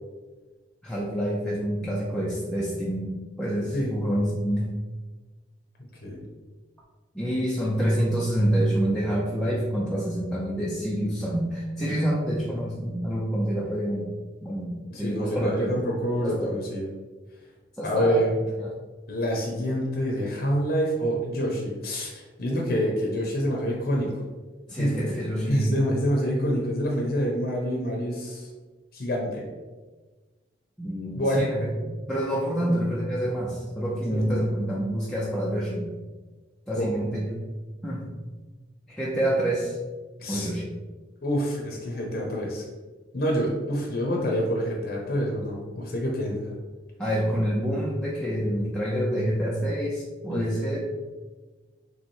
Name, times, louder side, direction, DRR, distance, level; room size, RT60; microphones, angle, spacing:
voice 1, 0.8-4.7 7.1-14.1 14.4-14.7 15.0-15.7 16.2-16.5 17.8-18.3 18.6-18.7 24.7-25.8 30.8-31.7 32.1-35.9 36.7-37.4 37.8-38.1 38.9-39.8 40.3-40.7 47.0-50.8, equal, 5° left, -6 dB, 0.5 m, -27 dB
voice 2, 14.9-16.9 17.8-18.4 19.1-24.1 24.8-24.9 25.5-28.5 28.9-29.4 31.1-31.4 32.6-32.7 34.1-34.4 36.7-36.9 40.2-40.5 41.2-42.6 43.1-46.5 50.3-50.5, equal, 55° left, -1 dB, 0.8 m, -27 dB
3.4 x 3.3 x 4.3 m, 1.3 s
head